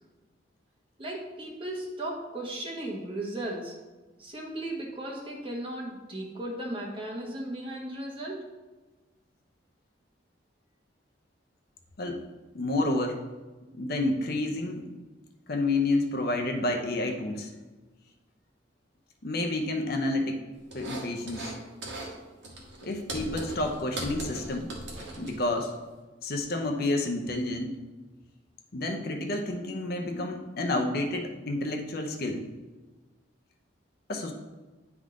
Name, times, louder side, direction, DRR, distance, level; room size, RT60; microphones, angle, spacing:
voice 1, 1.0-3.8 4.2-8.5, right 1 dB, 30° right, -2 dB, 1.2 m, -36 dB
voice 2, 12.5-13.2 13.7-14.9 15.5-17.5 19.2-20.4 20.7-21.5 22.8-24.7 25.2-25.7 26.2-27.8 28.7-32.4 34.1-34.3, left 2 dB, 55° left, 3 dB, 0.7 m, -29 dB
sound 1, 20.7-21.6 21.8-22.1 22.4-25.7, right 1 dB, 75° right, 1.5 m, -38 dB
9.6 x 3.6 x 3.7 m, 1.2 s
head